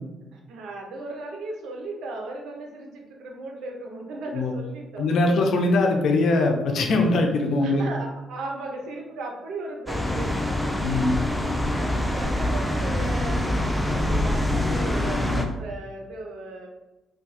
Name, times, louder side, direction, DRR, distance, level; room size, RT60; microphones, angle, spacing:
voice 1, 0.3-5.1 7.6-10.6 11.4-16.7, right 2 dB, 85° right, 0 dB, 0.7 m, -37 dB
voice 2, 5.0-7.8 10.8-11.2, left 2 dB, 70° left, 3 dB, 0.6 m, -21 dB
sound 1, 9.9-15.4, left 1 dB, 5° left, 0.4 m, -25 dB
2.5 x 2.3 x 4.1 m, 1.1 s
cardioid pair, 90°, 0 cm